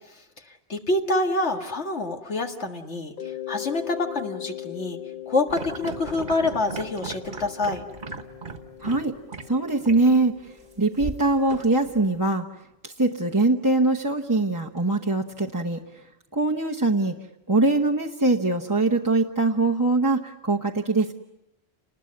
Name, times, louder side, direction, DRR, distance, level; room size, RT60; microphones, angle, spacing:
voice 1, 0.1-5.0 5.3-7.8, left 2 dB, 80° left, 4 dB, 2.2 m, -27 dB
Mallet percussion, 3.2-11.8, left 13 dB, 45° left, 1.6 m, -40 dB
sound 1, 5.5-9.0 9.3-9.4 9.8-10.0 11.0-12.1, right 4 dB, 45° right, 1.6 m, -36 dB
voice 2, 8.8-9.1 9.5-10.3 10.8-12.4 12.8-15.8 16.3-17.2 17.5-21.1, right 2 dB, 20° right, -1 dB, 0.9 m, -22 dB
30.0 x 20.0 x 9.6 m, 0.90 s
omnidirectional pair, 1.2 m